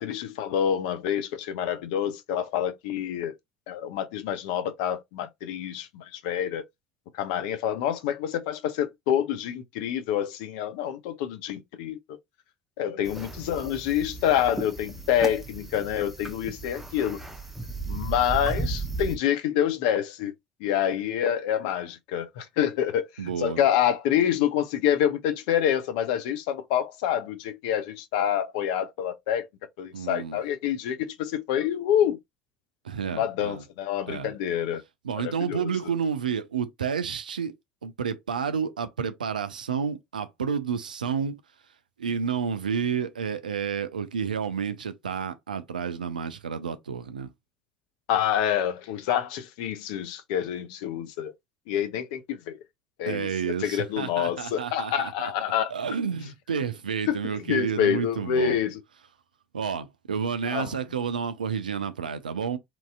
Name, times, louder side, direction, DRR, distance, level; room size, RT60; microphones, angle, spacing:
voice 1, 0.0-3.3 3.7-6.6 7.1-12.2 12.8-17.2 17.9-20.3 20.6-23.1 23.4-29.5 29.8-32.2 33.1-34.8 35.2-35.7 48.1-51.3 51.7-52.6 53.0-55.7 57.1-58.8 60.4-60.7, left 10 dB, 65° left, 0.5 m, -27 dB
sound 1, 13.0-19.2, right 3 dB, 5° right, 0.7 m, -35 dB
voice 2, 23.2-23.6 29.9-30.4 32.8-33.6 34.1-34.3 35.0-37.5 37.8-41.4 42.0-47.3 53.1-55.3 55.7-58.6 59.5-62.6, right 6 dB, 80° right, 0.4 m, -30 dB
2.9 x 2.7 x 2.3 m
figure-of-eight pair, 60°, 4 cm